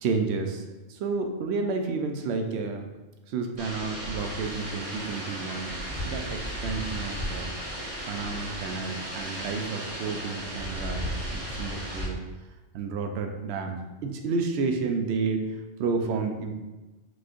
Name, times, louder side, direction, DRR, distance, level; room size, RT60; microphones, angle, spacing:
voice 1, 0.0-2.9 3.3-5.7 6.0-7.5 8.1-12.2 12.7-15.4 15.8-16.5, right 4 dB, 65° right, 5 dB, 0.8 m, -31 dB
sound 1, 3.6-12.1, equal, 30° right, 1.0 m, -35 dB
5.9 x 3.2 x 2.4 m, 1.1 s
omnidirectional pair, 1.3 m